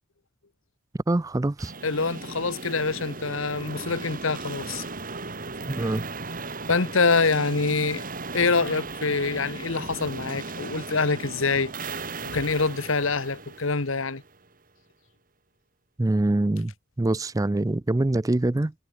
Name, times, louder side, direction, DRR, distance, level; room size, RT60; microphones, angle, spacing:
voice 1, 1.1-1.7 5.7-6.0 16.0-16.7 17.0-18.7, right 2 dB, 15° right, 0.4 m, -24 dB
sound 1, 1.6-14.5, right 3 dB, 40° right, 3.0 m, -37 dB
voice 2, 1.8-4.8 6.7-8.0 8.3-11.7 12.2-14.2, left 4 dB, 70° left, 1.3 m, -25 dB
head